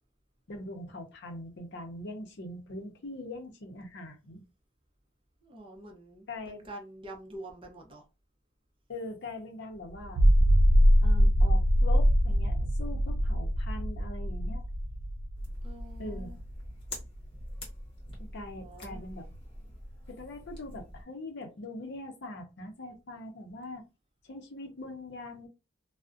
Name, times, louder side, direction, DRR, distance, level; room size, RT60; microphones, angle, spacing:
voice 1, 0.5-4.4 6.3-6.6 8.9-10.2 11.0-14.6 16.0-16.3 18.2-19.3 20.1-23.8 24.2-25.5, left 2 dB, 60° left, 0.6 m, -42 dB
voice 2, 5.4-8.0 15.6-16.4 18.3-19.0, right 1 dB, 25° right, 0.6 m, -47 dB
sound 1, 10.0-16.5, equal, 70° right, 0.4 m, -23 dB
sound 2, 15.3-21.0, left 1 dB, 30° left, 1.1 m, -44 dB
2.4 x 2.1 x 2.4 m
head